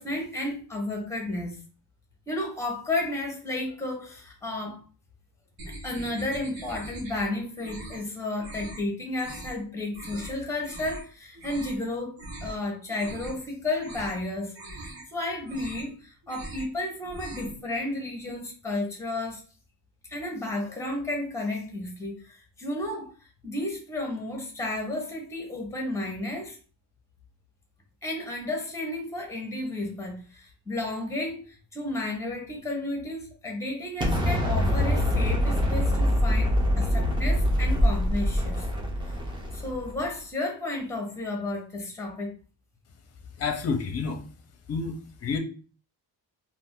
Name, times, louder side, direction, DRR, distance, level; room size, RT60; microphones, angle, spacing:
voice 1, 0.0-1.6 2.3-4.8 5.8-12.1 12.4-19.4 20.1-23.1 23.4-26.6 28.0-38.6 39.5-42.3, left 2 dB, 5° left, 1 dB, 0.8 m, -32 dB
sound 1, 5.6-7.3 7.6-8.1 8.4-8.8 9.2-9.6 9.9-10.3 10.6-11.0 11.3-11.8 12.2-12.5 12.9-13.5 13.8-14.2 14.5-15.0 15.4-15.9 16.2-16.7 17.0-17.6, right 2 dB, 85° right, 1.0 m, -41 dB
Explosion, 34.0-40.0, equal, 10° right, 0.4 m, -24 dB
voice 2, 43.4-44.2 44.7-45.4, left 5 dB, 35° left, 5 dB, 0.6 m, -29 dB
2.5 x 2.5 x 3.5 m, 0.37 s
wide cardioid pair, 170°, 43 cm